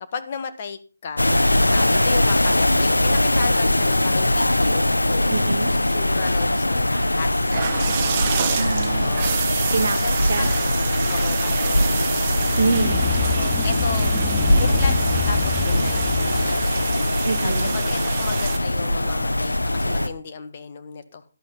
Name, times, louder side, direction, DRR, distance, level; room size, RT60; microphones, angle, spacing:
voice 1, 0.1-1.4 1.7-5.3 5.9-7.6 8.9-9.4 9.9-10.5 11.1-12.3 13.2-14.1 14.5-15.0 15.3-16.7 17.1-21.2, left 5 dB, 35° left, 9 dB, 1.5 m, -34 dB
sound 1, 1.2-20.1, left 1 dB, 90° left, 1.4 m, -21 dB
voice 2, 5.3-5.7 8.5-9.2 9.7-10.5 12.6-13.0 17.2-17.7, right 4 dB, 50° right, 10 dB, 1.3 m, -25 dB
sound 2, 7.5-18.6, right 8 dB, 30° right, 1.2 m, -29 dB
sound 3, 12.3-17.0, left 10 dB, 15° left, 0.5 m, -29 dB
14.0 x 11.5 x 3.9 m, 0.33 s
figure-of-eight pair, 155°, 0 cm